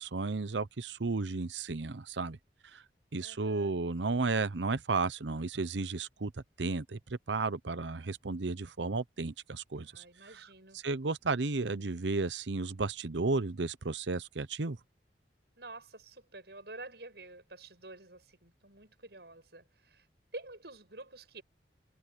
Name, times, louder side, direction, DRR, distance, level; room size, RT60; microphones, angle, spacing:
voice 1, 0.0-2.4 2.7-2.8 3.1-6.3 6.6-10.0 10.7-14.8, right 3 dB, 85° right, 0.8 m, -33 dB
voice 2, 3.2-3.7 9.8-10.8 15.6-20.1 20.3-21.4, right 2 dB, 65° right, 7.2 m, -49 dB
head